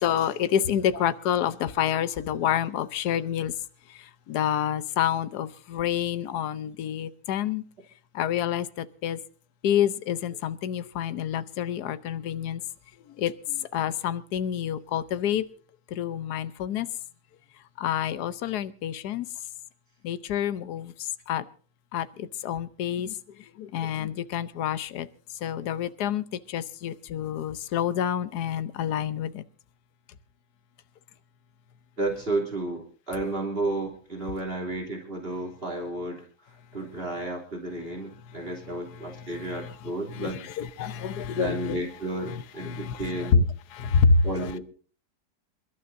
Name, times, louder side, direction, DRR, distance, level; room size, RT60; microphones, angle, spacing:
voice 1, 0.0-3.5 4.3-7.6 8.1-9.2 9.6-12.6 13.2-15.4 15.9-16.9 17.8-19.3 20.0-20.9 21.3-21.4 21.9-23.1 23.6-25.1 25.4-29.4 39.6-39.7 40.1-40.3 40.6-41.8 42.6-43.4 43.7-44.3, left 8 dB, 75° left, 1.4 m, -27 dB
voice 2, 32.0-40.5 41.3-43.4 44.2-44.6, right 2 dB, 35° right, 3.4 m, -32 dB
28.5 x 12.0 x 2.7 m
omnidirectional pair, 1.8 m